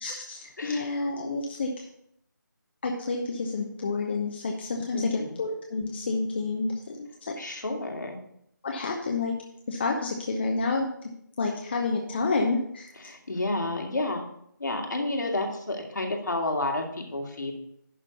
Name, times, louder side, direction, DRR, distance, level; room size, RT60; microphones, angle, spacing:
voice 1, 0.0-1.9 2.8-7.6 8.6-9.4 9.7-11.1 11.4-13.1, left 3 dB, 35° left, 1 dB, 0.9 m, -29 dB
voice 2, 4.9-5.4 7.4-8.2 13.0-14.2 14.6-17.5, left 2 dB, 65° left, 1 dB, 2.1 m, -30 dB
11.0 x 3.7 x 6.7 m, 0.72 s
figure-of-eight pair, 160°, 11 cm